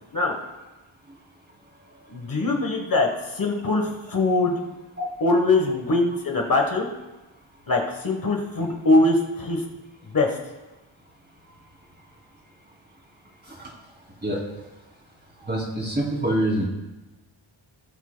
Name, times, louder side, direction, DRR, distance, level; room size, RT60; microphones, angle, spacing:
voice 1, 2.1-3.1 3.3-4.5 5.2-6.9 7.7-9.6 10.1-10.4, left 2 dB, 45° left, 1 dB, 1.3 m, -22 dB
voice 2, 15.4-16.7, right 1 dB, 20° right, -2 dB, 2.7 m, -25 dB
18.5 x 8.1 x 2.2 m, 1.1 s
wide cardioid pair, 125°, 49 cm